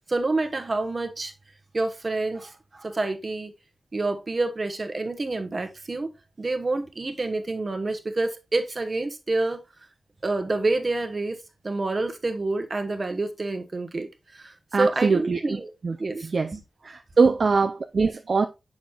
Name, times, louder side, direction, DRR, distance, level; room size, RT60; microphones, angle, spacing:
voice 1, 0.1-1.3 1.7-3.5 3.9-6.1 6.4-9.6 10.2-11.4 11.6-14.1 14.4-15.7 16.0-16.6, right 2 dB, 40° right, 1.1 m, -28 dB
voice 2, 14.7-15.4 15.8-16.5 16.8-18.5, right 4 dB, 55° right, 0.5 m, -22 dB
7.2 x 6.0 x 2.3 m
wide cardioid pair, 105°, 0 cm